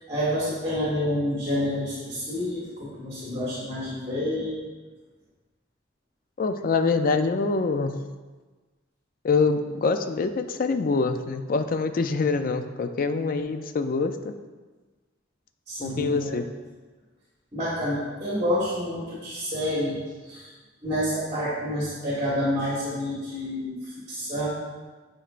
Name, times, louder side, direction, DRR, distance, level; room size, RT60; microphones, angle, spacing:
voice 1, 0.0-4.6 15.7-16.3 17.5-20.5 20.8-24.5, equal, 30° right, -8 dB, 1.5 m, -28 dB
voice 2, 6.4-7.9 9.2-14.3 15.8-16.4, left 4 dB, 45° left, 8 dB, 0.4 m, -25 dB
9.0 x 4.4 x 2.5 m, 1.3 s
head